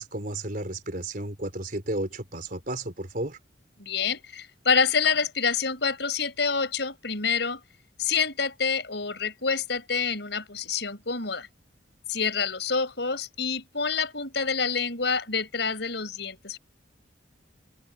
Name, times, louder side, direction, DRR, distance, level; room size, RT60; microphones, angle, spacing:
voice 1, 0.0-3.4, right 1 dB, 50° right, 4.2 m, -33 dB
voice 2, 3.8-7.6 8.0-11.5 12.1-16.6, left 5 dB, 65° left, 5.4 m, -27 dB
open air
head